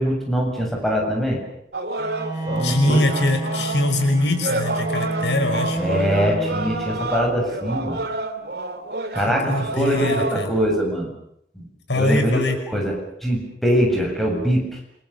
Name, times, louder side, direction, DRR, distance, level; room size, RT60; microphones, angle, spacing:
voice 1, 0.0-1.4 2.5-3.0 5.8-8.0 9.1-11.1 11.6-11.7 11.9-14.6, equal, ahead, -1 dB, 7.5 m, -23 dB
sound 1, 1.7-10.4, right 2 dB, 60° right, 2.6 m, -29 dB
Bowed string instrument, 2.0-7.3, right 2 dB, 20° right, 7.5 m, -29 dB
voice 2, 2.6-5.8 9.3-10.5 11.9-12.6, left 1 dB, 80° left, 6 dB, 5.6 m, -22 dB
28.5 x 26.5 x 6.9 m, 0.75 s
head